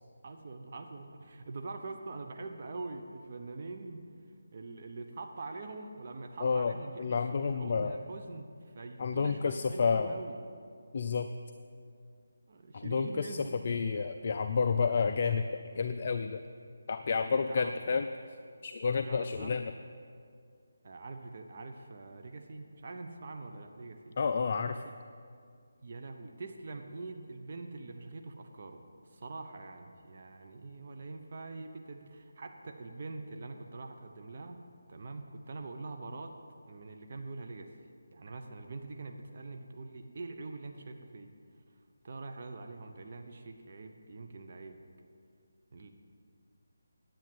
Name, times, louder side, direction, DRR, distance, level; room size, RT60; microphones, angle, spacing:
voice 1, 0.2-4.0 4.5-7.0 7.3-10.4 12.5-13.6 17.5-18.0 19.0-19.6 20.8-24.2 25.8-28.8 29.1-34.6 34.9-36.3 36.7-37.7 38.1-41.3 42.0-44.8 45.7-45.9, right 3 dB, 45° right, 4 dB, 0.9 m, -44 dB
voice 2, 6.4-6.7 7.0-8.0 9.0-10.2 10.9-11.3 12.7-13.3 13.6-16.4 16.9-18.0 18.6-19.7 24.2-24.8, left 5 dB, 40° left, 8 dB, 0.4 m, -30 dB
10.5 x 8.7 x 7.8 m, 2.3 s
figure-of-eight pair, 170°, 0 cm